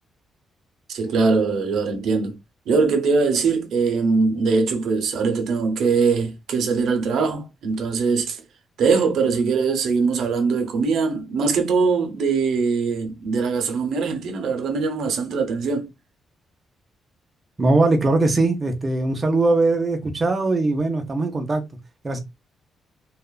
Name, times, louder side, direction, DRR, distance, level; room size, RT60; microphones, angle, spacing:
voice 1, 0.9-2.4 2.7-8.4 8.8-15.9, right 4 dB, 75° right, 0.6 m, -22 dB
voice 2, 17.6-21.6 22.0-22.2, right 2 dB, 25° right, 0.6 m, -20 dB
2.8 x 2.3 x 2.2 m
cardioid pair, 130°, 0 cm